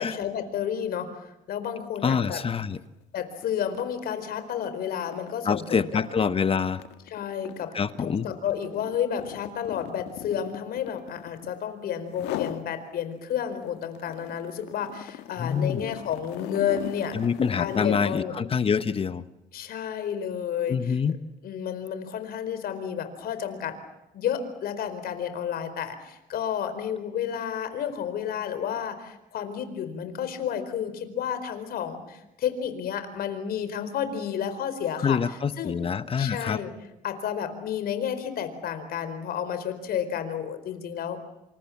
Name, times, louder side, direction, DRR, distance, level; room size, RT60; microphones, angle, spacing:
voice 1, 0.0-2.4 3.1-6.0 7.1-17.2 17.6-18.3 19.5-21.0 21.4-23.7 24.1-35.7 36.2-36.7 37.0-41.2, left 8 dB, 65° left, 10 dB, 4.5 m, -31 dB
voice 2, 2.0-2.8 5.5-6.8 7.7-8.3 15.4-15.8 17.1-19.2 20.7-21.1 35.0-36.6, left 6 dB, 35° left, 13 dB, 1.1 m, -26 dB
sound 1, 2.7-2.9 3.2-11.6 12.1-12.7 13.1-18.3, left 12 dB, 90° left, 1.7 m, -39 dB
27.5 x 27.0 x 7.3 m, 0.90 s
cardioid pair, 110°, 17 cm